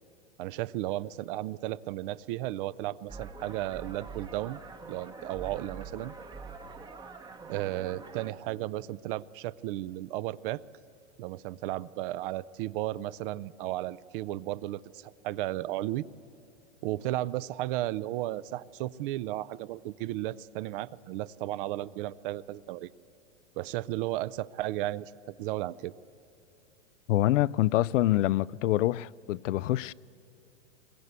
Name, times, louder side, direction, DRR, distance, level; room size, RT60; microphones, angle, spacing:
voice 1, 0.4-4.6 4.9-6.1 7.5-10.6 11.2-16.1 16.8-22.9 23.6-25.9, right 15 dB, 45° right, 0.5 m, -34 dB
sound 1, 3.1-8.3, right 4 dB, 10° right, 0.8 m, -44 dB
voice 2, 27.1-29.9, left 15 dB, 80° left, 0.5 m, -26 dB
22.0 x 20.0 x 8.1 m
hypercardioid pair, 135°, 37 cm